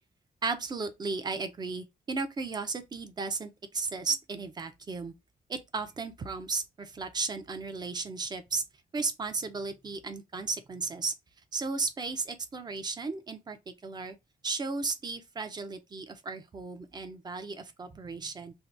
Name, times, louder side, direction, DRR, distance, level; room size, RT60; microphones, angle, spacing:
voice 1, 0.4-5.1 5.5-8.6 8.9-11.1 11.5-14.2 14.4-18.5, right 4 dB, 25° right, 0.4 m, -35 dB
2.8 x 2.1 x 3.1 m
wide cardioid pair, 150°, 16 cm